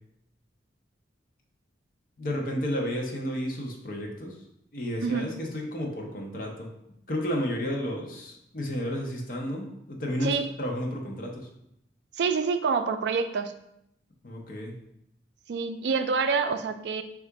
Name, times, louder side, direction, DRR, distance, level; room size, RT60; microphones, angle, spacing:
voice 1, 2.2-4.3 4.7-6.7 7.1-11.5 14.2-14.7, equal, 45° left, 0 dB, 0.6 m, -32 dB
voice 2, 5.0-5.3 10.2-10.5 12.2-13.5 15.5-17.0, right 5 dB, 60° right, 8 dB, 0.3 m, -27 dB
3.7 x 2.4 x 4.5 m, 0.79 s
head